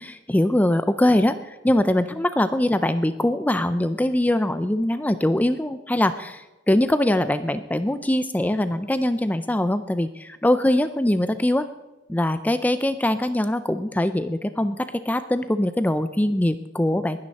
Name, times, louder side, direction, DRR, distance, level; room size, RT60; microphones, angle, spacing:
voice 1, 0.0-11.7 12.1-17.2, left 1 dB, 10° left, 11 dB, 0.4 m, -22 dB
21.0 x 9.7 x 4.2 m, 1.1 s
head